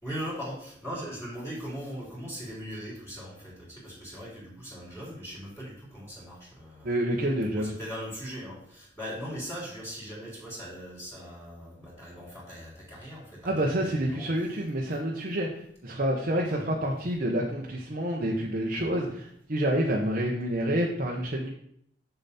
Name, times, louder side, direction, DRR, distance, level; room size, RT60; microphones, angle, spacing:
voice 1, 0.0-6.9 7.5-14.3 16.4-16.7, equal, 15° left, -7 dB, 3.3 m, -40 dB
voice 2, 6.8-7.7 13.4-21.5, right 1 dB, 50° right, -2 dB, 1.0 m, -28 dB
7.0 x 6.9 x 4.2 m, 0.68 s
head